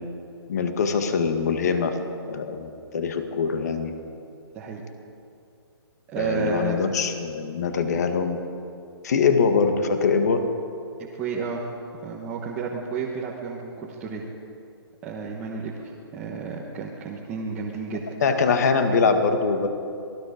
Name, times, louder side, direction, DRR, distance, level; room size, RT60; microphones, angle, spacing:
voice 1, 0.5-1.9 2.3-3.9 6.2-8.4 9.0-10.4 18.2-19.7, left 5 dB, 40° left, 6 dB, 1.9 m, -23 dB
voice 2, 6.1-6.8 11.0-11.6 12.0-14.2 15.0-18.0, right 5 dB, 10° right, -5 dB, 1.3 m, -31 dB
27.5 x 20.0 x 5.2 m, 2.5 s
hypercardioid pair, 175°, 14 cm